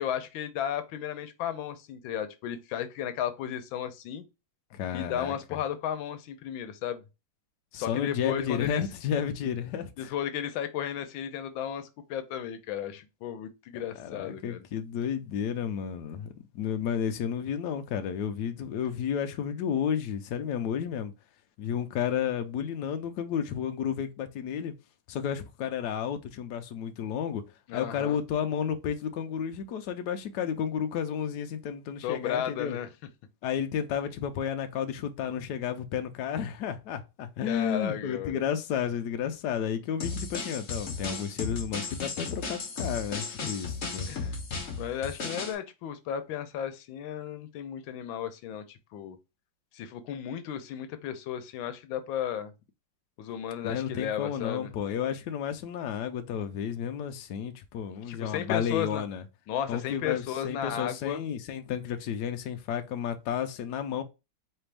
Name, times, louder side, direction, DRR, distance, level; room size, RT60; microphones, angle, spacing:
voice 1, 0.0-4.2 4.9-7.0 7.7-8.8 10.0-14.7 27.7-28.2 32.0-32.9 37.5-38.4 44.1-44.4 44.8-49.2 49.7-52.5 53.2-54.7 58.1-59.0 59.5-61.2, left 9 dB, 90° left, 1.4 m, -34 dB
voice 2, 4.7-5.3 7.7-10.1 14.0-21.1 21.6-24.7 25.1-27.4 27.7-32.8 33.4-44.1 53.6-59.2 59.7-64.0, left 8 dB, 70° left, 1.1 m, -32 dB
sound 1, 40.0-45.5, left 4 dB, 45° left, 1.2 m, -35 dB
4.3 x 3.4 x 3.3 m
omnidirectional pair, 2.1 m